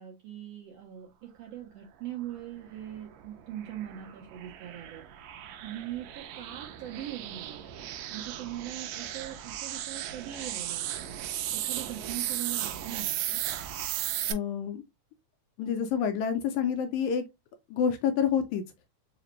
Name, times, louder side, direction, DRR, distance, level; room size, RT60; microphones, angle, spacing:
voice 1, 0.0-5.0 5.6-7.7 8.1-11.1 11.5-13.4, right 12 dB, 70° right, 1.5 m, -41 dB
sound 1, 2.8-14.3, right 12 dB, 90° right, 1.5 m, -36 dB
voice 2, 14.3-14.8 15.6-17.3 17.7-18.6, left 7 dB, 80° left, 1.8 m, -28 dB
4.9 x 2.5 x 3.0 m
omnidirectional pair, 3.6 m